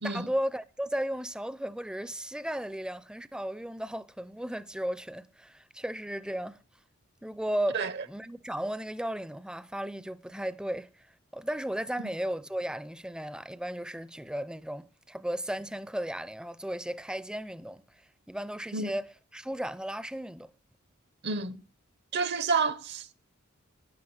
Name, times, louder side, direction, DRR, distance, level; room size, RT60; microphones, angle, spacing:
voice 1, 0.0-6.6 7.2-7.8 8.1-11.1 11.3-17.8 18.3-19.1 19.3-20.5, right 1 dB, 5° right, 0.6 m, -35 dB
voice 2, 21.2-21.6 22.1-23.1, right 4 dB, 55° right, 0.9 m, -30 dB
12.0 x 10.5 x 8.0 m
head